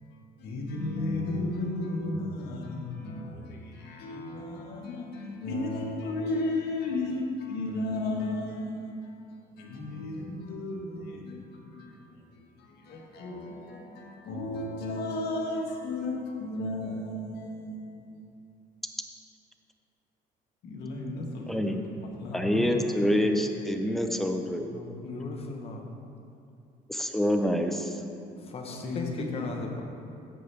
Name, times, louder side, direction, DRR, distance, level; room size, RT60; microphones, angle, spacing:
voice 1, 0.4-9.2 9.5-18.2 20.6-21.9 22.2-22.7 25.0-25.5 28.7-29.7, left 2 dB, 75° left, 0 dB, 1.5 m, -34 dB
voice 2, 21.5-21.8 22.3-24.7 26.9-28.0, equal, ahead, 5 dB, 0.6 m, -27 dB
voice 3, 22.3-23.4 24.7-25.9 28.4-29.8, left 3 dB, 35° left, 2 dB, 1.0 m, -39 dB
14.5 x 5.5 x 3.4 m, 2.5 s
cardioid pair, 110°, 17 cm